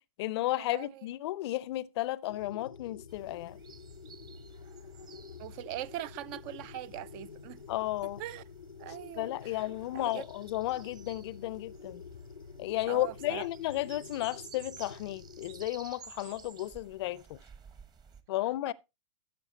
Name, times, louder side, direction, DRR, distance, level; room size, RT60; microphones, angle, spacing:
voice 1, 0.0-3.6 7.7-8.2 9.2-12.0 12.6-17.4 18.3-18.7, left 16 dB, 55° left, 0.5 m, -33 dB
voice 2, 0.6-1.0 5.4-7.6 8.2-8.4 8.8-9.6 9.9-10.2 12.9-13.4 18.7-18.8, right 14 dB, 40° right, 0.4 m, -41 dB
sound 1, 2.3-15.7, left 5 dB, 90° left, 0.7 m, -49 dB
sound 2, 3.1-18.2, right 6 dB, 25° right, 1.1 m, -55 dB
13.5 x 6.7 x 2.8 m
figure-of-eight pair, 100°, 17 cm